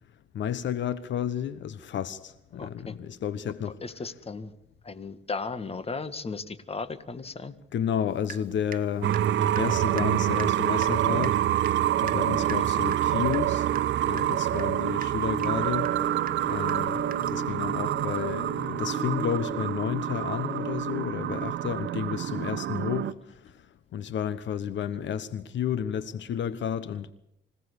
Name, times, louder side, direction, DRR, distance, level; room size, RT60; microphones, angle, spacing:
voice 1, 0.3-3.8 7.7-9.2 9.6-11.4 12.0-13.7 14.0-15.9 16.4-17.0 17.3-23.1 23.4-23.5 23.9-27.1, left 9 dB, 65° left, 1.2 m, -31 dB
voice 2, 2.5-3.0 3.8-4.5 4.8-7.6 12.3-12.7, left 4 dB, 30° left, 1.9 m, -36 dB
Water tap faucet / Drip, 8.2-8.9 9.1-17.5, right 8 dB, 45° right, 1.3 m, -43 dB
sound 1, 9.0-23.1, right 12 dB, 70° right, 1.0 m, -27 dB
sound 2, 15.4-20.7, left 5 dB, 50° left, 6.8 m, -41 dB
25.5 x 17.5 x 8.3 m
cardioid pair, 90°, 20 cm